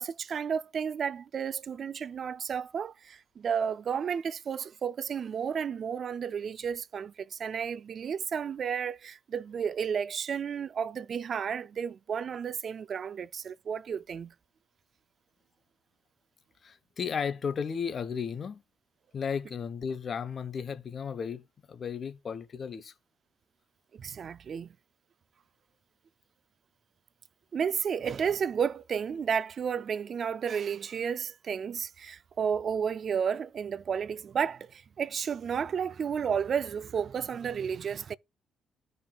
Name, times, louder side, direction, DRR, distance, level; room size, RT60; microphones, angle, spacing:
voice 1, 0.0-14.3 23.9-24.7 27.5-38.2, right 7 dB, 55° right, 0.4 m, -32 dB
voice 2, 16.6-18.6 19.1-21.4 21.7-22.9, left 6 dB, 50° left, 0.8 m, -34 dB
14.0 x 5.4 x 2.3 m
cardioid pair, 90°, 0 cm